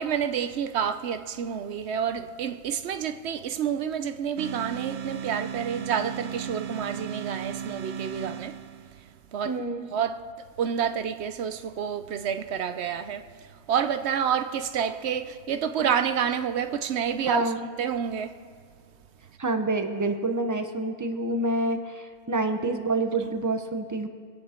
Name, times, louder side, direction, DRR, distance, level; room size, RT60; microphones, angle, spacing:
voice 1, 0.0-8.6 9.3-9.6 9.9-10.3 10.6-18.4, right 8 dB, 85° right, 1.0 m, -29 dB
sound 1, 4.4-9.1, right 8 dB, 50° right, 0.4 m, -35 dB
voice 2, 9.4-9.9 17.2-17.7 19.4-24.1, right 2 dB, 20° right, 0.9 m, -27 dB
24.5 x 9.5 x 4.4 m
omnidirectional pair, 1.1 m